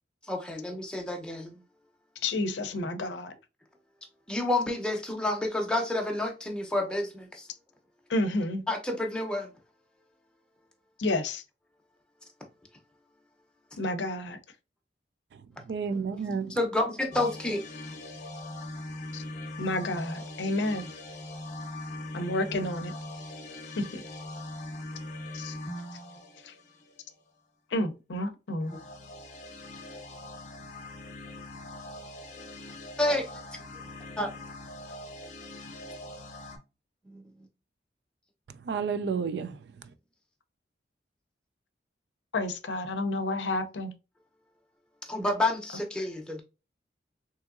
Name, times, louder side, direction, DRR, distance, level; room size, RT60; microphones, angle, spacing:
voice 1, 0.3-1.6 4.3-7.5 8.7-9.5 16.6-17.6 33.0-33.2 34.2-34.3 37.1-37.2 45.1-46.4, left 1 dB, 5° left, 0.6 m, -29 dB
voice 2, 2.2-3.3 8.1-8.6 11.0-11.4 13.8-14.4 19.1-19.2 19.6-20.8 22.1-22.9 23.9-24.0 25.3-25.5 27.7-28.7 42.3-43.9, left 2 dB, 85° left, 0.5 m, -30 dB
voice 3, 15.3-16.6 38.6-39.9, right 5 dB, 65° right, 0.3 m, -32 dB
sound 1, 17.1-27.2 28.6-36.6, left 1 dB, 45° left, 0.7 m, -41 dB
3.6 x 2.9 x 2.4 m
head